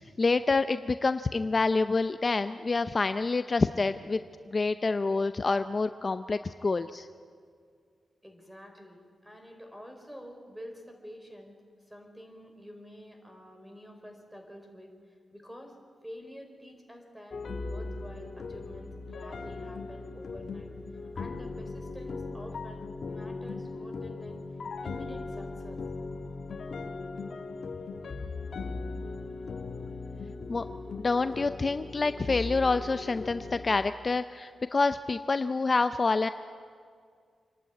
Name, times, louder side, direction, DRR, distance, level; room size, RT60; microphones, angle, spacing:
voice 1, 0.2-4.2 4.5-7.1 30.5-30.6 31.0-36.3, left 3 dB, 40° left, 11 dB, 0.6 m, -27 dB
voice 2, 8.2-11.6 11.9-14.9 15.3-15.7 16.0-17.4 17.6-20.7 21.1-24.4 24.8-25.8, equal, 5° right, 4 dB, 4.4 m, -48 dB
sound 1, 17.3-33.9, left 3 dB, 60° left, 1.6 m, -38 dB
27.0 x 11.5 x 9.6 m, 2.1 s
cardioid pair, 75°, 0 cm